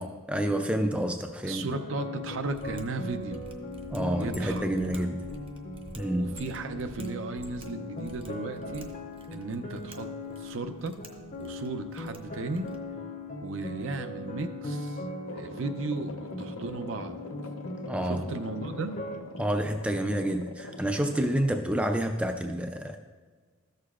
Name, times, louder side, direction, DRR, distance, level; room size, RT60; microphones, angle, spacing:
voice 1, 0.0-1.7 3.9-5.3 6.0-6.4 17.9-18.3 19.4-23.0, right 1 dB, 5° right, 6 dB, 0.3 m, -29 dB
voice 2, 1.4-3.4 4.2-4.7 4.9-5.0 6.1-8.9 9.3-10.1 10.4-11.0 11.4-12.7 13.4-15.0 15.3-17.2 18.0-19.0, right 3 dB, 65° right, 8 dB, 0.5 m, -35 dB
sound 1, 1.7-19.2, left 2 dB, 35° left, 0.6 m, -39 dB
Mechanisms, 2.4-12.9, right 1 dB, 25° right, 0.7 m, -50 dB
sound 2, 15.3-21.5, left 3 dB, 85° left, 0.7 m, -43 dB
13.5 x 6.6 x 2.4 m, 1.5 s
head